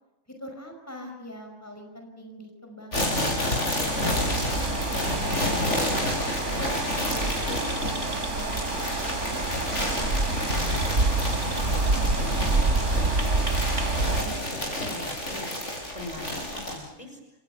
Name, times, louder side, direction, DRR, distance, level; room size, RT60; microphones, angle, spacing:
voice 1, 0.4-3.3 3.8-5.8 6.1-6.7 7.1-10.1, equal, 10° left, 3 dB, 5.3 m, -43 dB
sound 1, 2.9-16.8, left 1 dB, 65° left, 7.8 m, -30 dB
sound 2, 3.9-14.2, right 2 dB, 65° right, 4.1 m, -27 dB
voice 2, 11.1-13.6 14.0-17.2, equal, 30° left, 4 dB, 5.3 m, -44 dB
29.5 x 29.0 x 5.9 m, 0.99 s
omnidirectional pair, 1.3 m